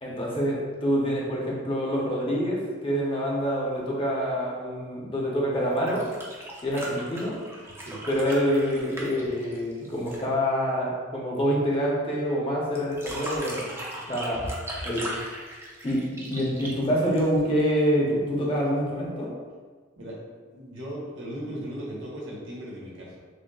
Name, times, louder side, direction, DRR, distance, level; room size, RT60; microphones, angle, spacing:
voice 1, 0.0-6.0 6.6-7.4 8.1-13.6 14.1-14.5 14.8-15.1 15.8-19.3, equal, 25° left, -4 dB, 0.7 m, -26 dB
sound 1, 5.7-10.3 12.8-17.6 19.0-19.1, right 1 dB, 15° right, 0.4 m, -38 dB
voice 2, 20.4-23.2, equal, 70° right, -5 dB, 1.0 m, -37 dB
6.1 x 2.1 x 2.3 m, 1.5 s
head